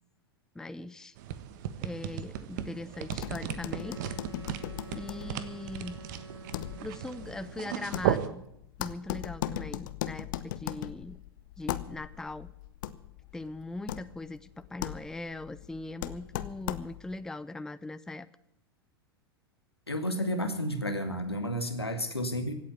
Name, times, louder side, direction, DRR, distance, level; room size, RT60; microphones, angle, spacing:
voice 1, 0.5-1.1 1.8-4.1 4.9-6.0 6.8-8.4 8.8-11.2 11.6-12.5 13.3-18.3, left 2 dB, 5° left, 15 dB, 0.6 m, -40 dB
sound 1, 1.2-8.3, right 11 dB, 50° right, 1.3 m, -36 dB
sound 2, 3.1-17.2, left 13 dB, 50° left, 0.9 m, -39 dB
Wind instrument woodwind instrument, 3.6-7.7, right 3 dB, 85° right, 2.1 m, -48 dB
voice 2, 19.9-22.5, equal, 85° left, 7 dB, 2.1 m, -31 dB
16.5 x 8.5 x 9.3 m, 0.74 s
figure-of-eight pair, 90°, 13 cm